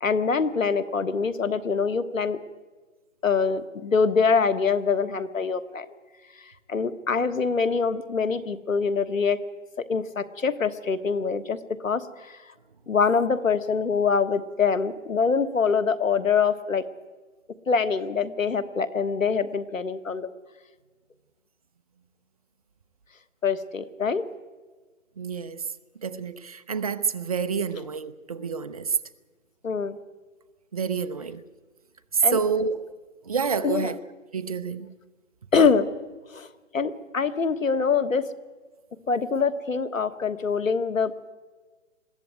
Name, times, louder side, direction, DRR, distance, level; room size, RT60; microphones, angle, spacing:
voice 1, 0.0-2.4 3.2-5.9 6.4-9.4 9.8-12.5 12.9-16.8 17.7-20.3 23.4-24.2 29.6-30.0 32.2-32.4 33.6-33.9 35.5-35.9 36.3-36.5 36.7-38.2 39.1-41.3, left 5 dB, 90° left, 1.6 m, -24 dB
voice 2, 25.2-25.6 26.0-29.0 30.7-31.4 32.1-32.8 33.3-34.0 34.3-34.9, right 6 dB, 30° right, 0.7 m, -27 dB
21.5 x 14.5 x 9.2 m
hypercardioid pair, 160°, 39 cm